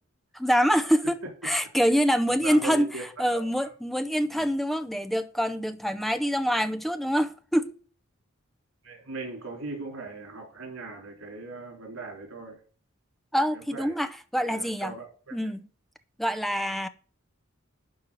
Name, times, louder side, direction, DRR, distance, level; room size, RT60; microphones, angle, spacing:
voice 1, 0.3-1.2 1.4-2.9 3.2-7.7 13.3-14.9 15.3-15.7 16.2-16.9, equal, ahead, 0.6 m, -25 dB
voice 2, 2.3-3.0 3.3-3.7 4.3-4.5 8.8-12.6 13.7-13.9 14.4-15.3, right 3 dB, 90° right, 4.0 m, -39 dB
12.0 x 4.6 x 7.7 m
head